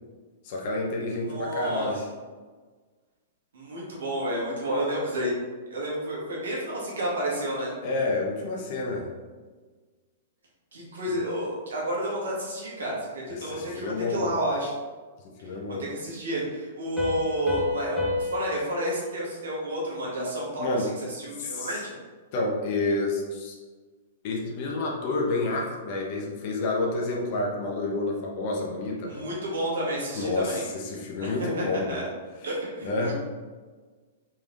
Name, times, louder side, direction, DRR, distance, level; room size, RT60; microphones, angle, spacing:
voice 1, 0.4-2.0 7.8-9.1 11.1-11.2 13.4-14.3 15.4-15.9 20.6-20.9 21.4-21.7 22.3-23.6 24.2-29.2 30.1-32.0 32.4-32.5 32.8-33.1, left 2 dB, 50° left, -1 dB, 0.8 m, -29 dB
voice 2, 1.2-2.0 3.5-5.3 5.7-7.7 10.7-14.7 15.9-20.9 21.2-21.9 29.1-30.6 31.2-31.3 31.6-32.1 32.4-33.1, right 1 dB, 85° right, -5 dB, 1.4 m, -30 dB
Piano, 17.0-20.4, left 2 dB, 5° right, 1.2 m, -31 dB
4.0 x 3.4 x 2.5 m, 1.4 s
hypercardioid pair, 125°, 0 cm